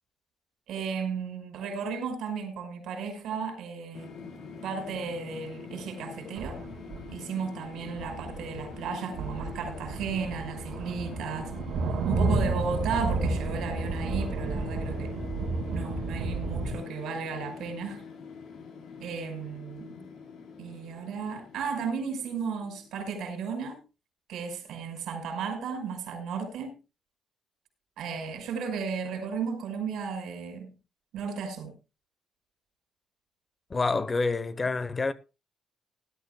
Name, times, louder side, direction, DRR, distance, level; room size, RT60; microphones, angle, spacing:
voice 1, 0.7-4.1 4.6-6.6 7.1-11.5 12.0-15.1 15.7-18.1 19.0-19.9 20.6-23.8 24.3-26.8 28.0-30.7 31.1-31.7, right 5 dB, 80° right, 5.7 m, -34 dB
sound 1, 3.9-23.1, left 5 dB, 75° left, 4.2 m, -44 dB
sound 2, 6.4-7.1 7.8-8.9 9.1-16.7, right 3 dB, 65° right, 4.8 m, -31 dB
voice 2, 33.7-35.1, left 3 dB, 20° left, 0.9 m, -27 dB
19.0 x 12.5 x 2.3 m
cardioid pair, 180°, 0 cm